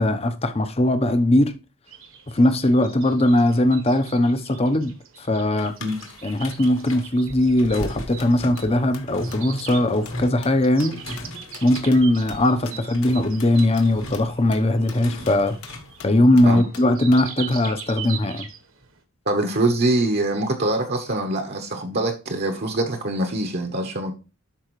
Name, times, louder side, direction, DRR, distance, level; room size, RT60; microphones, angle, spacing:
voice 1, 0.0-1.5 2.3-5.7 6.2-11.0 11.6-15.6 16.0-18.5, left 1 dB, 25° left, 0.7 m, -20 dB
sound 1, 1.9-19.0, right 8 dB, 65° right, 1.3 m, -42 dB
sound 2, 5.6-16.0, left 1 dB, 65° left, 1.7 m, -37 dB
sound 3, 7.8-17.5, left 6 dB, 90° left, 1.6 m, -46 dB
voice 2, 19.3-24.1, right 2 dB, 45° right, 0.9 m, -24 dB
11.5 x 4.7 x 3.1 m
head